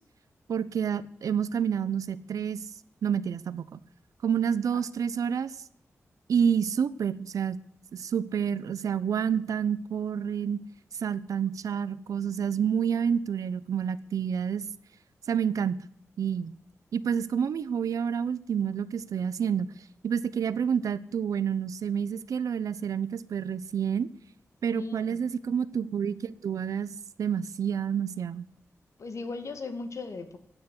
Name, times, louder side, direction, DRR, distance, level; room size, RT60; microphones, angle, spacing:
voice 1, 0.5-2.6 3.0-3.8 4.2-5.6 6.3-7.6 7.9-10.6 11.0-14.6 15.3-15.8 16.2-16.5 16.9-19.7 20.0-24.1 24.6-26.9 27.2-28.4, right 7 dB, 90° right, 17 dB, 0.8 m, -28 dB
voice 2, 24.7-25.2 29.0-30.4, left 3 dB, 65° left, 9 dB, 2.3 m, -37 dB
15.0 x 9.4 x 9.7 m, 0.68 s
wide cardioid pair, 130°, 6 cm